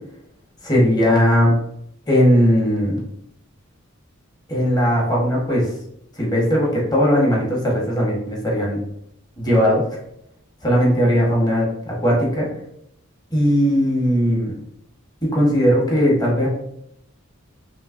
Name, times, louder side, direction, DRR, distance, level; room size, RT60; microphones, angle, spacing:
voice 1, 0.6-1.5 2.1-3.0 4.5-5.7 6.2-8.8 9.4-9.8 10.6-12.5 13.3-14.5 15.2-16.5, equal, 20° left, -3 dB, 1.2 m, -18 dB
5.5 x 2.8 x 2.5 m, 0.75 s
head